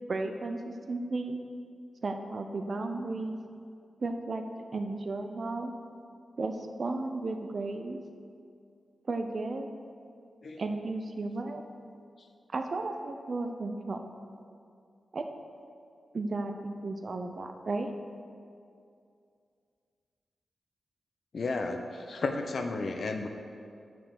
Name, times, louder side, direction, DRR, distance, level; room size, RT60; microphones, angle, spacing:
voice 1, 0.1-1.4 2.0-3.3 4.0-4.4 4.7-5.7 6.4-6.5 6.8-8.0 9.1-9.7 10.6-11.6 12.5-14.0 15.1-15.2 16.1-17.9, right 3 dB, 60° right, 5 dB, 0.8 m, -34 dB
voice 2, 21.3-23.3, left 3 dB, 65° left, 5 dB, 0.8 m, -33 dB
7.1 x 6.2 x 6.7 m, 2.4 s
cardioid pair, 50°, 0 cm